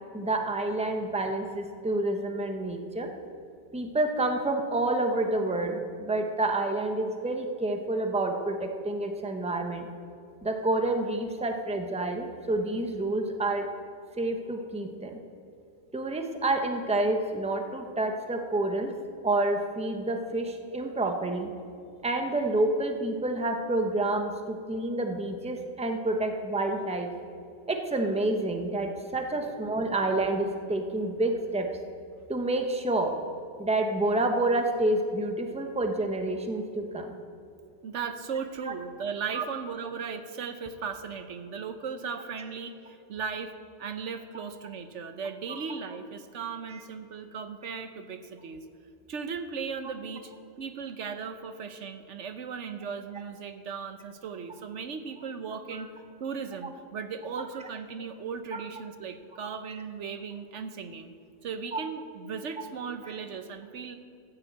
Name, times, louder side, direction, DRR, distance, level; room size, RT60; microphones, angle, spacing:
voice 1, 0.1-3.1 3.7-9.9 10.4-13.7 14.2-15.2 15.9-18.9 19.2-21.5 22.0-27.1 27.7-31.7 32.3-33.2 33.6-37.2 38.7-38.8 39.3-39.4 46.7-46.8 58.5-58.6 61.7-61.8, right 2 dB, 5° right, 4 dB, 0.9 m, -28 dB
voice 2, 37.8-43.5 43.8-48.6 49.1-50.3 50.6-55.9 56.2-61.1 61.4-64.0, right 6 dB, 75° right, 8 dB, 1.1 m, -37 dB
14.0 x 7.5 x 8.1 m, 2.7 s
omnidirectional pair, 1.3 m